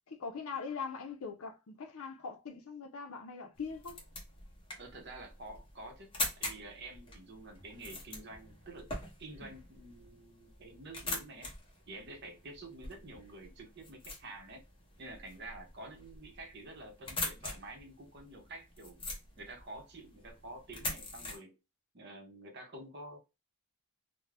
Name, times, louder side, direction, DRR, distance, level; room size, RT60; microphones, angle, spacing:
voice 1, 0.1-4.0, left 5 dB, 70° left, 0.5 m, -41 dB
sound 1, 3.5-21.4, left 2 dB, 25° left, 0.7 m, -44 dB
voice 2, 4.8-6.1 6.4-8.9 9.2-11.5 11.9-14.6 15.0-21.6 21.9-23.2, right 2 dB, 50° right, 0.7 m, -49 dB
2.4 x 2.1 x 3.2 m
head